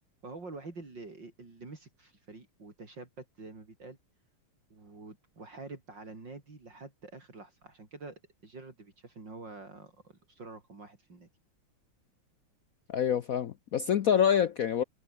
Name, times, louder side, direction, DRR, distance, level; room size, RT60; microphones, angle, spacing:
voice 1, 0.2-4.0 4.7-11.3, right 3 dB, 55° right, 4.9 m, -47 dB
voice 2, 12.9-14.8, left 8 dB, 70° left, 0.8 m, -26 dB
omnidirectional pair, 2.3 m